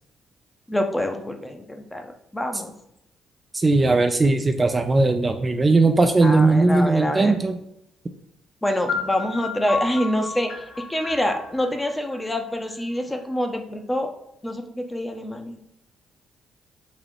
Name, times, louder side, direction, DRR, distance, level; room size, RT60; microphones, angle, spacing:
voice 1, 0.7-2.0 2.3-2.7 6.2-7.4 8.6-10.6 10.9-14.1 14.4-15.6, left 1 dB, 15° left, 4 dB, 0.7 m, -26 dB
voice 2, 3.5-7.5, right 3 dB, 30° right, 6 dB, 0.4 m, -18 dB
sound 1, 8.9-12.7, left 4 dB, 85° left, 1.0 m, -32 dB
4.0 x 2.8 x 3.1 m, 0.77 s
supercardioid pair, 60°, 0 cm